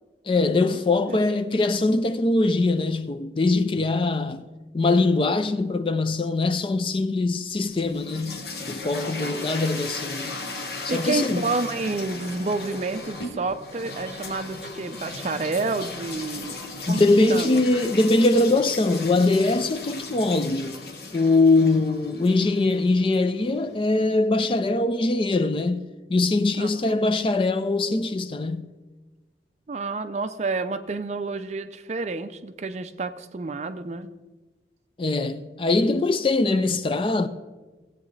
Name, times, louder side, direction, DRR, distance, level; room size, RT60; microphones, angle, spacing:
voice 1, 0.3-4.5 4.7-10.4 10.8-11.5 16.9-20.8 21.1-25.8 26.1-28.7 35.0-37.3, left 2 dB, 30° left, 0.4 m, -22 dB
sound 1, 7.6-23.6, left 3 dB, 60° left, 1.0 m, -37 dB
voice 2, 10.9-16.6 16.9-17.0 17.3-17.6 21.6-21.8 26.6-27.0 29.7-34.1, right 3 dB, 40° right, 0.4 m, -29 dB
16.0 x 8.1 x 3.2 m
head